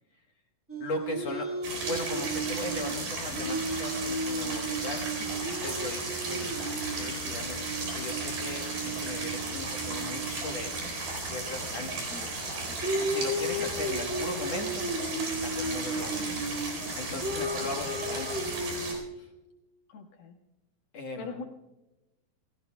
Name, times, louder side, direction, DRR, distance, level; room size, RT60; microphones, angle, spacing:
sound 1, 0.7-10.8 12.3-19.0, right 2 dB, 5° right, 1.3 m, -35 dB
voice 1, 0.8-5.0 5.6-10.9 11.3-12.0 13.0-14.9 15.4-16.2 17.0-18.6 19.1-19.3 20.9-21.3, left 3 dB, 60° left, 2 dB, 1.9 m, -38 dB
sound 2, 1.6-18.9, right 2 dB, 80° right, 6.0 m, -35 dB
voice 2, 12.1-12.5 13.5-13.9 16.2-16.4 17.6-17.7 19.9-20.4 21.2-21.4, left 5 dB, 90° left, 2 dB, 3.5 m, -44 dB
28.5 x 19.0 x 2.3 m, 1.0 s
omnidirectional pair, 4.2 m